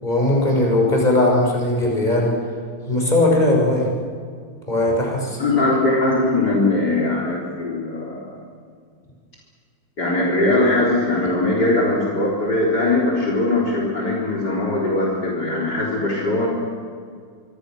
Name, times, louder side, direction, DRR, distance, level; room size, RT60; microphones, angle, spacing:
voice 1, 0.0-2.3 2.9-3.9 4.7-5.4, left 1 dB, 20° left, -2 dB, 6.4 m, -18 dB
voice 2, 5.4-8.4 10.0-16.5, left 2 dB, 50° left, -3 dB, 4.6 m, -20 dB
26.5 x 25.0 x 6.4 m, 2.1 s
omnidirectional pair, 2.2 m